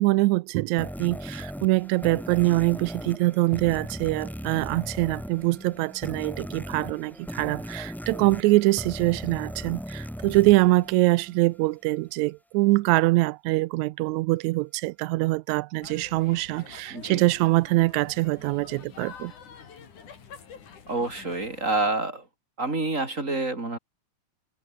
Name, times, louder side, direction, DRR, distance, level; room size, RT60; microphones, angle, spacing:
voice 1, 0.0-19.3, right 21 dB, 80° right, 1.8 m, -24 dB
sound 1, 0.8-11.6, equal, ahead, 3.6 m, -38 dB
sound 2, 15.8-21.9, left 6 dB, 90° left, 4.8 m, -47 dB
voice 2, 16.9-17.3 20.9-22.2 22.6-23.8, right 2 dB, 25° right, 3.6 m, -28 dB
omnidirectional pair, 3.4 m